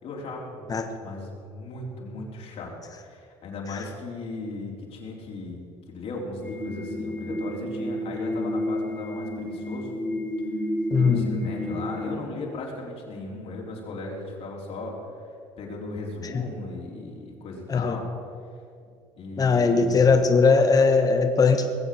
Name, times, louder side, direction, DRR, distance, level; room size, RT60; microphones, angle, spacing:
voice 1, 0.0-9.9 10.9-14.9 15.6-18.1 19.2-20.3, left 2 dB, 55° left, -2 dB, 4.3 m, -37 dB
sound 1, 6.4-12.1, left 1 dB, 15° left, 3.2 m, -31 dB
voice 2, 10.9-11.3 16.3-16.4 17.7-17.9 19.4-21.7, left 4 dB, 30° left, 6 dB, 1.4 m, -19 dB
20.5 x 7.5 x 7.9 m, 2.3 s
supercardioid pair, 100°, 12 cm